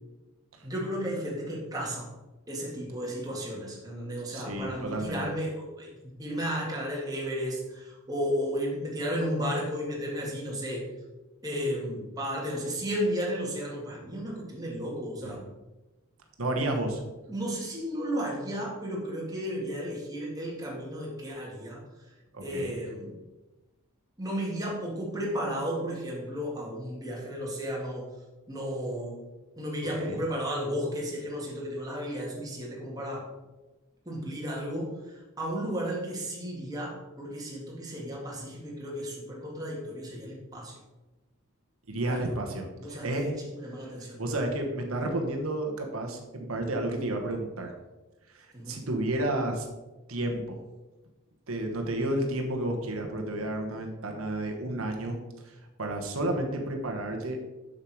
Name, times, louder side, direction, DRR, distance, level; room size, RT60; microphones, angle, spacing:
voice 1, 0.6-2.1 2.5-5.9 6.2-10.9 11.4-15.4 17.3-21.8 22.4-23.2 24.2-28.1 28.5-29.3 29.6-33.3 34.1-40.7 42.0-42.4 42.8-44.2 48.5-48.8, equal, 20° right, -3 dB, 1.9 m, -33 dB
voice 2, 4.3-5.3 15.2-15.4 16.4-17.0 22.3-22.7 30.0-30.2 41.9-43.4 43.8-43.9 44.2-47.7 48.3-49.7 50.1-50.6 51.5-57.4, right 1 dB, 85° right, 3 dB, 1.2 m, -31 dB
7.1 x 6.6 x 4.7 m, 1.1 s
head